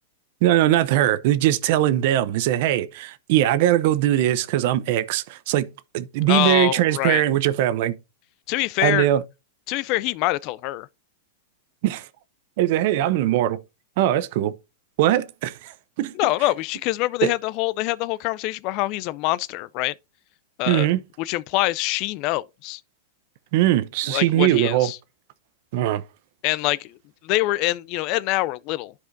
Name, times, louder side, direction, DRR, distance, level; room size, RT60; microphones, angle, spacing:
voice 1, 0.4-8.0 8.8-9.2 11.8-12.1 12.6-13.6 14.0-14.5 15.0-15.7 16.0-16.1 17.2-17.3 20.7-21.0 23.5-24.9 25.7-26.0, right 13 dB, 60° right, 0.6 m, -21 dB
voice 2, 6.3-7.2 8.5-9.1 9.7-10.9 16.1-19.9 20.6-20.9 21.2-22.8 24.1-25.0 26.4-27.0 27.2-28.9, left 18 dB, 45° left, 0.3 m, -25 dB
11.0 x 4.9 x 2.6 m
hypercardioid pair, 130°, 0 cm